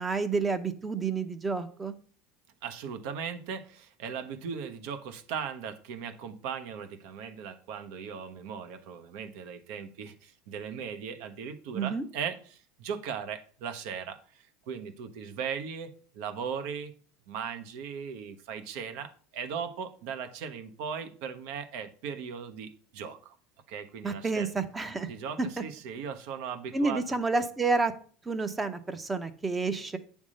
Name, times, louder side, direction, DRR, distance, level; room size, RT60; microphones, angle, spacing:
voice 1, 0.0-2.0 11.7-12.0 24.0-25.1 25.4-25.6 26.7-27.9 28.2-30.0, right 4 dB, 15° right, 10 dB, 0.7 m, -29 dB
voice 2, 2.6-16.9 17.3-23.4 23.7-24.5 25.1-27.0, right 7 dB, 65° right, 9 dB, 1.0 m, -38 dB
8.6 x 3.6 x 6.4 m, 0.43 s
supercardioid pair, 150°, 0 cm